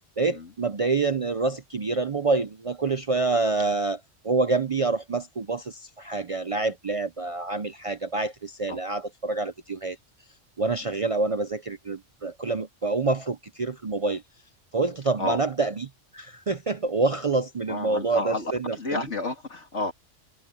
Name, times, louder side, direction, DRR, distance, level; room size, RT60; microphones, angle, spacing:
voice 1, 0.2-10.0 10.6-14.2 14.7-19.1, right 3 dB, 40° right, 0.5 m, -27 dB
voice 2, 17.7-19.9, left 2 dB, 70° left, 3.3 m, -31 dB
omnidirectional pair, 1.2 m